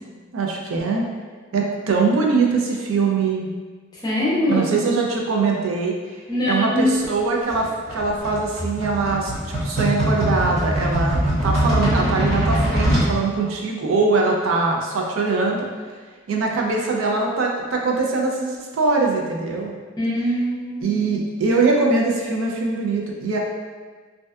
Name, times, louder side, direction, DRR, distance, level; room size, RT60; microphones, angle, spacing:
voice 1, 0.3-1.0 1.5-3.5 4.5-5.9 6.5-15.7 16.3-19.7 20.8-23.4, right 3 dB, 75° right, 0 dB, 0.4 m, -22 dB
voice 2, 3.9-4.9 6.3-6.9 20.0-21.1, left 1 dB, 20° left, -7 dB, 0.5 m, -23 dB
sound 1, 7.5-13.1, right 1 dB, 45° right, 1.1 m, -22 dB
2.5 x 2.2 x 2.2 m, 1.5 s
head